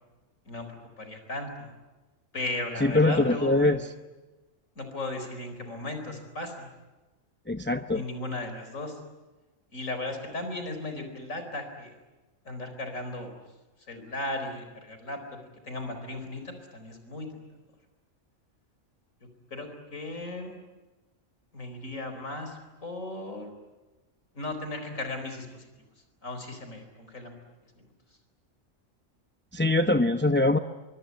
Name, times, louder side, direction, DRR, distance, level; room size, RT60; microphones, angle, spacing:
voice 1, 0.5-1.7 2.3-3.8 4.8-6.7 7.9-9.0 9.7-11.9 12.4-13.4 13.9-15.2 15.6-17.4 19.5-20.6 21.5-23.5 24.3-25.6 26.2-27.4 27.8-27.9, left 2 dB, 75° left, 7 dB, 4.8 m, -36 dB
voice 2, 2.8-3.8 7.5-8.0 29.5-30.6, left 2 dB, 10° left, 7 dB, 0.7 m, -23 dB
24.5 x 24.5 x 9.6 m, 1.1 s
omnidirectional pair, 1.4 m